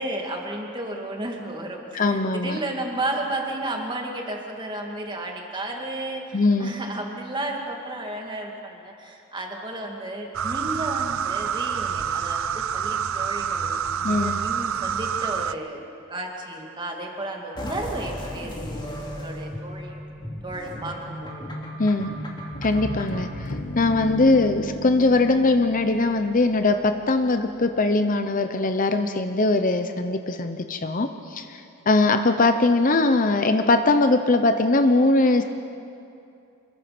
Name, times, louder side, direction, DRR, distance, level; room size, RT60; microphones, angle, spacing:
voice 1, 0.0-13.7 14.1-15.8 16.1-20.0 20.4-21.4, right 1 dB, 20° right, 1 dB, 2.5 m, -33 dB
voice 2, 1.9-2.6 6.3-6.7 14.0-14.3 21.8-22.1 22.6-31.6 31.9-35.4, left 2 dB, 40° left, 8 dB, 0.8 m, -21 dB
sound 1, 10.3-15.5, right 7 dB, 75° right, 0.6 m, -27 dB
sound 2, 17.6-23.4, equal, 20° left, 2.9 m, -35 dB
sound 3, 22.5-27.3, equal, 55° left, 1.7 m, -35 dB
27.0 x 22.0 x 6.1 m, 2.7 s
head